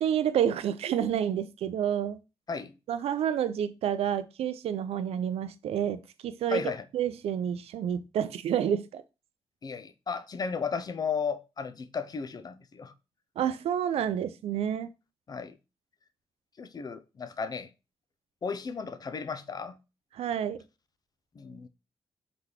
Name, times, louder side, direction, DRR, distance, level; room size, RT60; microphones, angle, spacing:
voice 1, 0.0-2.2 2.9-6.6 6.9-9.0 13.4-14.9 20.1-20.6, right 9 dB, 80° right, 0.4 m, -29 dB
voice 2, 6.5-6.9 9.6-12.9 15.3-15.6 16.6-17.7 18.4-19.8 21.4-21.7, left 5 dB, 40° left, 0.4 m, -34 dB
3.9 x 3.4 x 2.9 m
cardioid pair, 75°, 10 cm